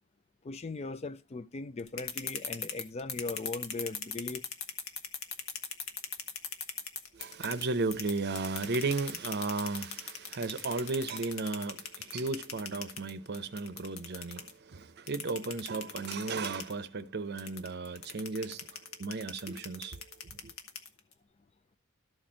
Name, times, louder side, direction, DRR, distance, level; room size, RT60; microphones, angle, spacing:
voice 1, 0.4-4.4, left 3 dB, 30° left, 0.4 m, -39 dB
sound 1, 1.8-7.6 7.9-14.5 15.1-16.7 17.4-21.1, left 6 dB, 70° left, 1.2 m, -39 dB
voice 2, 7.1-20.5, right 3 dB, 50° right, 0.7 m, -35 dB
12.5 x 4.4 x 6.2 m
head